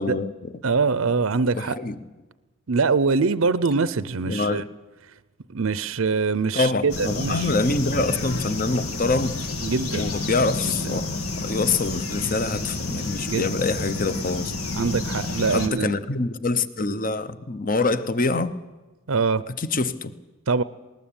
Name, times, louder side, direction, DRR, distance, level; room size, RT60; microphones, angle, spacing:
voice 1, 0.0-0.5 1.5-1.9 4.2-4.7 6.5-9.3 9.9-14.5 15.5-18.6 19.6-20.1, left 3 dB, 40° left, 0.9 m, -25 dB
voice 2, 0.6-1.8 2.7-4.6 5.5-7.5 9.6-10.1 10.9-11.0 13.3-13.5 14.7-16.0 19.1-19.4 20.5-20.6, right 4 dB, 65° right, 0.6 m, -23 dB
sound 1, 6.9-15.7, left 3 dB, 85° left, 2.2 m, -30 dB
20.0 x 19.5 x 8.8 m
head